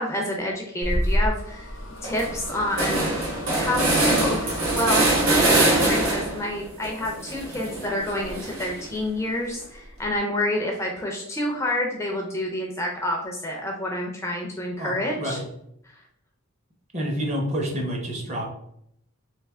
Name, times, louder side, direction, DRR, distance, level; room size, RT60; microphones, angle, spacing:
voice 1, 0.0-1.7 2.0-5.1 5.3-15.4, left 1 dB, 10° left, 0 dB, 0.4 m, -28 dB
sound 1, 0.8-1.3 1.7-1.8 2.0-6.5 6.8-9.0, right 1 dB, 75° right, 1.2 m, -23 dB
sound 2, 1.0-6.1, left 1 dB, 65° left, 0.5 m, -37 dB
voice 2, 14.8-15.5 16.9-18.5, equal, 30° right, 1 dB, 0.6 m, -28 dB
3.2 x 3.0 x 3.4 m, 0.74 s
head